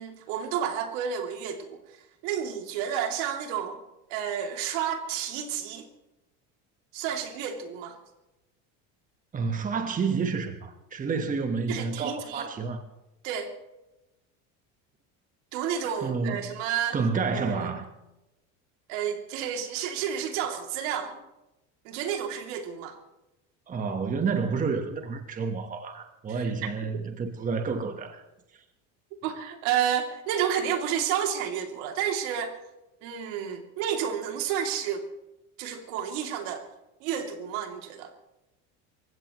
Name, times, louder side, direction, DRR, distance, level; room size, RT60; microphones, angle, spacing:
voice 1, 0.0-1.8 2.2-3.8 4.1-5.9 6.9-8.0 11.7-12.5 13.2-13.5 15.5-17.0 17.3-17.7 18.9-21.2 21.8-23.0 26.3-26.5 29.2-32.6 33.0-35.1 35.6-36.7 37.0-38.1, right 8 dB, 75° right, 4 dB, 2.8 m, -30 dB
voice 2, 9.3-12.8 16.0-16.5 16.9-17.9 23.7-28.2 28.5-28.6, right 5 dB, 20° right, 6 dB, 1.2 m, -29 dB
28.0 x 16.0 x 3.1 m, 0.97 s
supercardioid pair, 130°, 37 cm